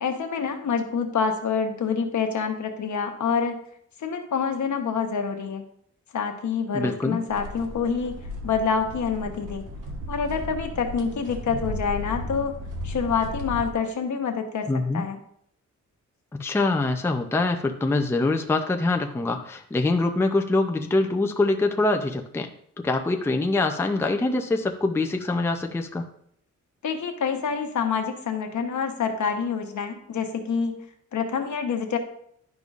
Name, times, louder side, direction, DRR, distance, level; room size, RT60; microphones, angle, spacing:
voice 1, 0.0-3.6 4.0-5.6 6.1-8.1 8.4-9.6 10.1-12.5 12.8-14.7 14.9-15.2 26.8-32.0, left 6 dB, 70° left, 5 dB, 1.0 m, -27 dB
voice 2, 6.7-7.2 14.7-15.0 16.3-22.5 22.8-26.1, left 2 dB, 10° left, 4 dB, 0.4 m, -24 dB
sound 1, 7.3-13.7, equal, 85° right, 1.1 m, -35 dB
10.5 x 5.3 x 2.4 m, 0.68 s
wide cardioid pair, 145°, 31 cm